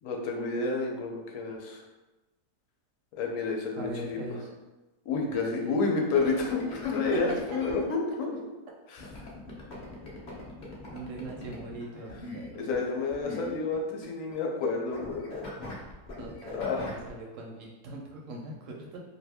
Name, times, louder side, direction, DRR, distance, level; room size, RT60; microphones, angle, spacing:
voice 1, 0.0-1.8 3.2-4.2 5.1-8.3 8.9-9.1 12.5-15.3 16.5-16.9, left 4 dB, 65° left, 1 dB, 0.9 m, -30 dB
voice 2, 3.8-4.5 5.3-5.8 7.1-7.2 10.9-12.7 16.2-19.0, right 2 dB, 70° right, -1 dB, 0.8 m, -41 dB
sound 1, 6.1-7.8 9.0-14.7 14.9-17.1, left 2 dB, 50° left, 0.5 m, -42 dB
2.7 x 2.5 x 3.4 m, 1.1 s
omnidirectional pair, 1.6 m